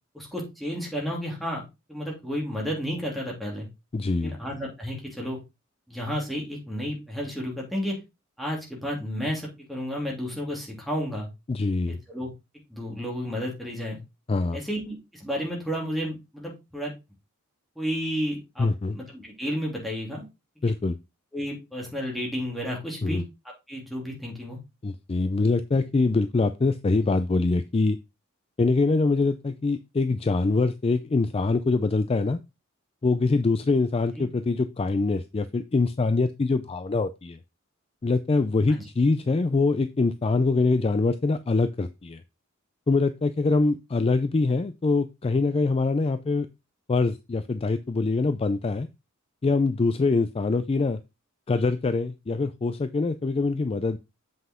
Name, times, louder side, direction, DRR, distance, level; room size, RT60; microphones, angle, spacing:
voice 1, 0.1-3.7 4.2-5.4 5.9-8.0 8.4-11.3 11.9-12.3 12.7-14.0 14.5-16.9 17.8-20.2 21.3-23.2 23.7-24.6 34.2-34.3, equal, ahead, -2 dB, 2.9 m, -32 dB
voice 2, 3.9-4.4 11.5-12.0 14.3-14.6 18.6-19.0 20.6-21.0 23.0-23.2 24.8-28.0 28.6-32.4 33.0-37.4 38.0-42.2 42.9-46.5 46.9-48.9 49.4-51.0 51.5-54.0, left 3 dB, 25° left, 12 dB, 0.4 m, -24 dB
7.8 x 5.6 x 3.7 m, 0.25 s
head